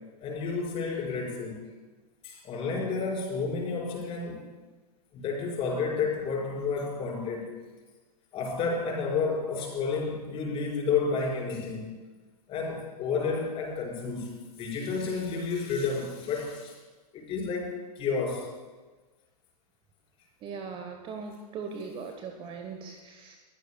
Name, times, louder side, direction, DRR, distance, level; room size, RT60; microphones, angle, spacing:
voice 1, 0.2-1.6 2.2-4.5 5.1-7.5 8.3-11.9 12.5-16.8 17.1-18.5, left 4 dB, 30° left, -2 dB, 5.3 m, -31 dB
voice 2, 20.4-23.4, right 5 dB, 25° right, 5 dB, 1.2 m, -39 dB
22.0 x 15.0 x 2.3 m, 1.3 s
figure-of-eight pair, 105°, 21 cm